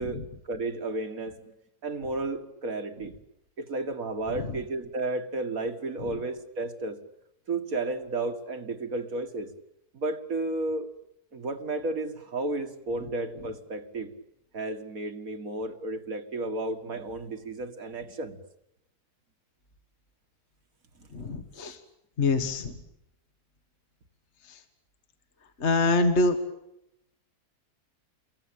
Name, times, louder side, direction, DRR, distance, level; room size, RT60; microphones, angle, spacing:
voice 1, 0.0-1.5 1.8-3.1 3.6-7.0 7.5-9.5 9.9-10.9 11.3-14.1 14.5-18.4 21.0-21.1, right 2 dB, 60° right, 2.3 m, -33 dB
voice 2, 21.1-21.8 22.2-22.8 25.6-26.4, left 3 dB, 45° left, 1.9 m, -24 dB
29.5 x 22.5 x 8.8 m
omnidirectional pair, 1.7 m